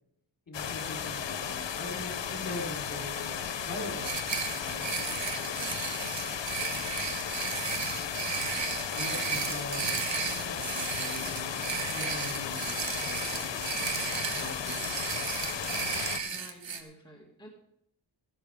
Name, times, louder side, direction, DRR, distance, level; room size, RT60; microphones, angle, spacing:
sound 1, 0.5-16.2, left 7 dB, 80° left, 1.0 m, -35 dB
voice 1, 0.5-4.2 4.6-6.0 8.9-9.9 10.3-13.5 14.2-14.9, left 1 dB, 50° left, 0 dB, 4.5 m, -42 dB
sound 2, 4.0-16.8, right 6 dB, 85° right, 1.3 m, -34 dB
voice 2, 16.2-17.5, equal, 10° left, -2 dB, 2.2 m, -51 dB
14.5 x 12.0 x 3.7 m, 0.75 s
wide cardioid pair, 110°, 44 cm